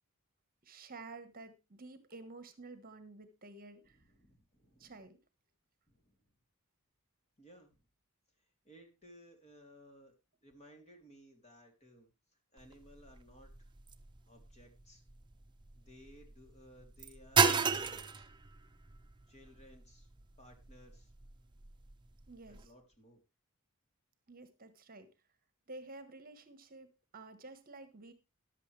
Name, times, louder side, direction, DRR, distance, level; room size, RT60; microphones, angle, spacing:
voice 1, 0.6-4.0 4.8-5.2 22.3-22.7 24.3-25.1 25.7-28.1, right 3 dB, 40° right, 10 dB, 1.4 m, -51 dB
voice 2, 3.8-5.0 5.9-6.2 7.4-7.8 8.6-10.1 10.4-12.1 12.5-13.7 14.3-15.0 15.8-18.2 19.3-20.1 20.4-21.1 22.5-23.2, equal, 30° left, 3 dB, 3.3 m, -59 dB
sound 1, 12.6-22.7, right 5 dB, 20° right, 0.9 m, -36 dB
14.5 x 11.0 x 3.3 m, 0.27 s
head